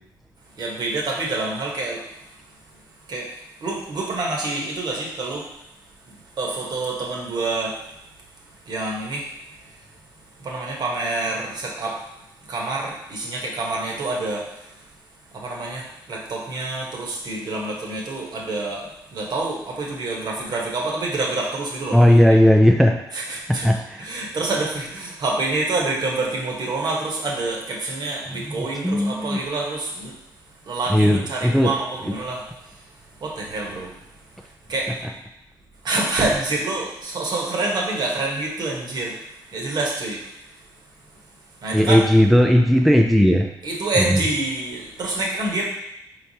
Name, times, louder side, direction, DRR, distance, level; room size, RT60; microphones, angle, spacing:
voice 1, 0.6-2.0 3.1-3.3 3.6-5.4 6.4-7.7 8.7-9.3 10.4-12.0 12.5-14.4 15.3-22.1 23.1-23.7 24.0-30.1 30.7-32.4 33.2-33.9 34.7-34.9 35.8-39.1 39.5-40.2 41.6-42.0 43.6-45.6, right 2 dB, 55° right, -2 dB, 1.1 m, -27 dB
voice 2, 21.9-23.0 23.5-24.0 28.3-29.4 30.9-31.7 41.7-43.5 44.0-44.2, equal, ahead, 2 dB, 0.3 m, -16 dB
4.5 x 3.2 x 2.8 m, 0.82 s
cardioid pair, 80°, 8 cm